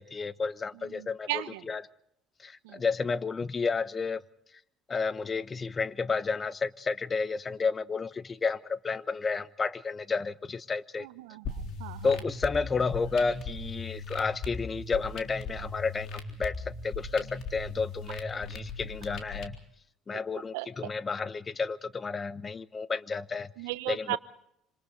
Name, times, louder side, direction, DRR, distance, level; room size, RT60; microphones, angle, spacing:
voice 1, 0.0-1.8 2.4-4.2 4.9-11.1 12.0-19.6 20.1-23.5 23.9-24.2, left 4 dB, 30° left, 16 dB, 1.0 m, -31 dB
voice 2, 0.8-1.8 2.6-2.8 11.0-12.1 20.1-20.2 20.5-20.9 23.6-24.2, right 18 dB, 80° right, 14 dB, 1.0 m, -37 dB
sound 1, 11.4-19.4, left 3 dB, 60° left, 3.6 m, -39 dB
27.0 x 26.5 x 4.1 m, 0.75 s
hypercardioid pair, 60°, 0 cm